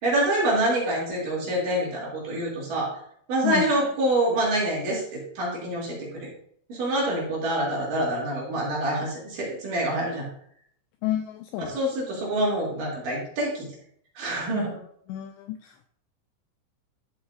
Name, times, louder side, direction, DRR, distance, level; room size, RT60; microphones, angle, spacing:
voice 1, 0.0-3.0 3.3-6.3 6.7-10.3 11.7-13.7 14.2-14.8, right 1 dB, 50° right, -4 dB, 3.7 m, -26 dB
voice 2, 11.0-11.7 14.5-14.8 15.1-15.9, left 12 dB, 85° left, 8 dB, 2.5 m, -31 dB
12.5 x 7.8 x 2.5 m, 0.65 s
omnidirectional pair, 5.6 m